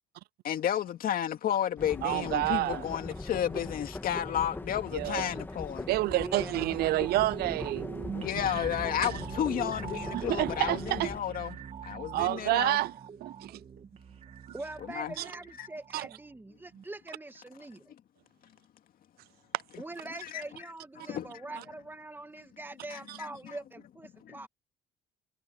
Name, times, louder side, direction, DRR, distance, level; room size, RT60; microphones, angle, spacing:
voice 1, 0.4-5.9 8.1-12.8 14.9-15.1 15.6-15.7 20.2-20.4 21.0-21.3 22.9-23.0 23.5-23.6 24.2-24.4, left 10 dB, 60° left, 2.3 m, -32 dB
sound 1, 1.8-11.2, left 2 dB, 10° left, 2.1 m, -40 dB
voice 2, 2.0-2.9 4.9-5.3 5.9-7.9 8.3-8.4 9.0-9.1 10.1-11.1 12.1-12.9 13.2-13.6 15.2-15.3 15.9-16.1 23.1-23.2, right 17 dB, 70° right, 0.4 m, -29 dB
voice 3, 6.1-7.1 14.5-17.9 19.8-24.5, right 2 dB, 10° right, 1.8 m, -43 dB
sound 2, 7.0-16.4 16.7-16.8, right 7 dB, 40° right, 1.6 m, -42 dB
cardioid pair, 110°, 17 cm